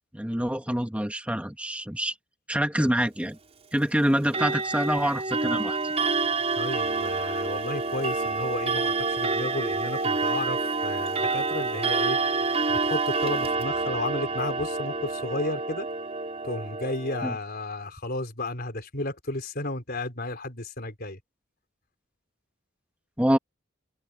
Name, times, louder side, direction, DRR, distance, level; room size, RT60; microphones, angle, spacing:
voice 1, 0.1-2.1 2.5-3.4 3.7-5.9 17.2-17.4 23.2-23.4, equal, 5° right, 1.5 m, -26 dB
Clock, 4.2-17.3, right 3 dB, 30° right, 5.0 m, -28 dB
voice 2, 6.6-12.2 12.7-15.9 16.4-21.2, left 2 dB, 50° left, 4.0 m, -33 dB
head